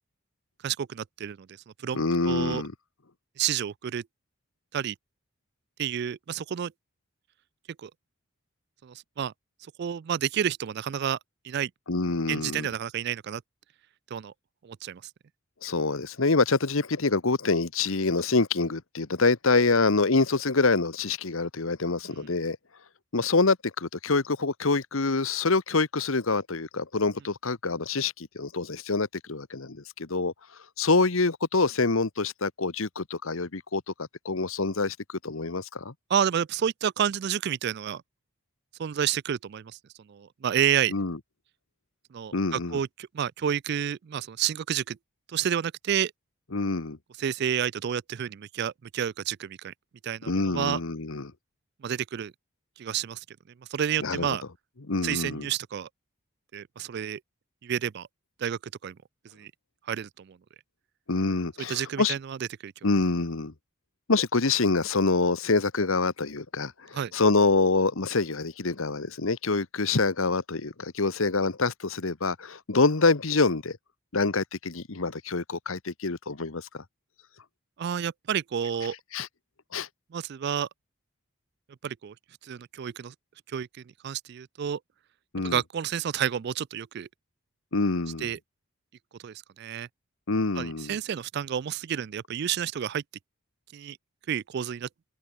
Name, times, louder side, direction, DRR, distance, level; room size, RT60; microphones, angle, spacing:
voice 1, 0.6-1.5 1.8-2.6 3.4-4.0 4.7-4.9 5.8-6.7 7.8-7.9 8.8-9.3 9.8-11.2 11.4-11.7 12.3-13.4 14.1-14.3 14.6-15.0 22.1-22.2 36.1-38.0 38.8-39.7 40.1-40.9 42.1-45.0 45.3-46.1 47.2-49.7 50.0-50.8 51.8-52.3 52.8-53.2 53.7-54.4 55.0-55.9 56.5-57.2 57.6-58.1 58.4-58.9 59.3-59.5 59.9-60.4 61.7-62.4 62.6-62.7 66.9-67.1 77.8-78.9 80.1-80.7 81.8-82.1 82.4-83.1 83.5-83.7 84.0-84.8 85.4-87.1 88.2-88.4 89.2-89.9 90.6-93.0 93.7-94.0 94.3-94.9, right 9 dB, 50° right, 0.3 m, -30 dB
voice 2, 1.9-2.7 11.9-12.7 15.6-22.6 23.1-30.3 30.8-35.9 40.9-41.2 42.3-42.8 46.5-47.0 50.2-51.3 54.0-54.4 54.9-55.5 61.1-62.1 62.8-63.5 64.1-73.8 74.1-76.8 79.1-79.3 79.7-79.9 85.3-85.6 87.7-88.3 90.3-91.0, left 3 dB, 70° left, 1.2 m, -26 dB
head